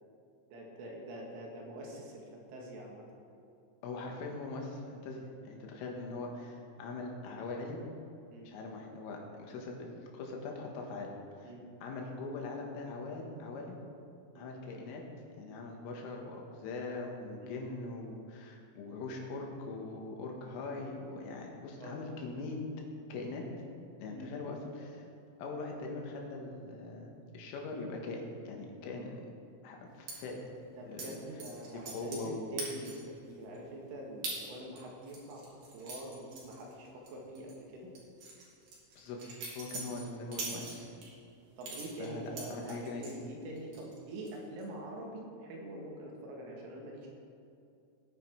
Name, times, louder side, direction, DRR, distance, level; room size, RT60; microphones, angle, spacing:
voice 1, 0.5-3.1 8.3-8.5 11.4-11.6 14.3-14.5 17.4-17.6 21.8-22.0 24.1-24.5 30.8-37.9 40.5-40.7 41.6-47.1, right 1 dB, 75° right, -1 dB, 4.1 m, -45 dB
voice 2, 3.8-7.8 8.5-11.1 11.4-11.5 11.8-13.8 14.4-15.0 15.4-22.6 23.1-23.5 24.0-25.1 25.4-29.3 29.6-30.4 30.9-31.2 31.9-32.5 39.0-39.2 39.6-41.0 42.0-43.0, left 3 dB, 75° left, 0 dB, 3.9 m, -41 dB
sound 1, 30.1-30.2 31.0-31.1 31.4-32.3 32.6-33.1 33.5-33.6 34.2-34.4 34.8-37.1 37.4-37.5 38.0-41.1 41.6-43.2 43.6-44.0 44.3-44.6, right 3 dB, 50° right, 3.7 m, -42 dB
17.5 x 9.6 x 4.6 m, 2.6 s
omnidirectional pair, 6.0 m